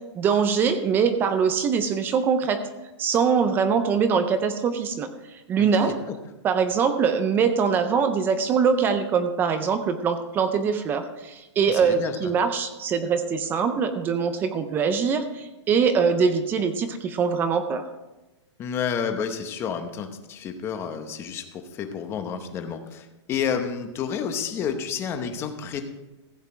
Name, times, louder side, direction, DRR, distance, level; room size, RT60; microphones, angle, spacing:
voice 1, 0.1-2.6 3.0-5.9 6.4-17.8, right 6 dB, 15° right, 10 dB, 0.5 m, -23 dB
voice 2, 5.6-6.2 11.7-12.3 18.6-25.8, left 7 dB, 15° left, 7 dB, 0.8 m, -30 dB
15.0 x 8.1 x 4.4 m, 1.0 s
hypercardioid pair, 165°, 15 cm